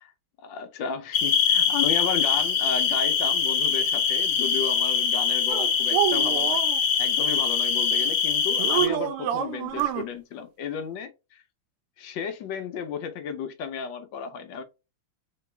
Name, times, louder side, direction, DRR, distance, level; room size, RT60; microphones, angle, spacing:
voice 1, 0.4-6.6 7.0-11.4 12.0-14.6, left 7 dB, 70° left, 1.3 m, -33 dB
sound 1, 1.1-8.9, left 6 dB, 90° left, 1.7 m, -23 dB
sound 2, 5.5-6.8 8.6-10.1, right 11 dB, 90° right, 1.5 m, -27 dB
3.9 x 2.9 x 3.3 m
omnidirectional pair, 2.4 m